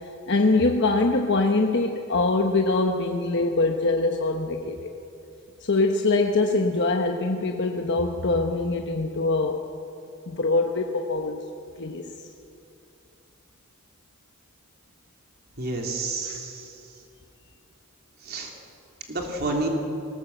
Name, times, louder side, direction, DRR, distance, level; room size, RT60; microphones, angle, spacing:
voice 1, 0.0-4.9 5.6-9.6 10.3-11.4 11.8-12.1 16.2-16.4, left 3 dB, 55° left, 3 dB, 1.1 m, -23 dB
voice 2, 15.6-16.8 18.2-18.5 19.1-19.7, right 2 dB, 50° right, 1 dB, 3.4 m, -29 dB
19.5 x 19.0 x 8.0 m, 2.7 s
head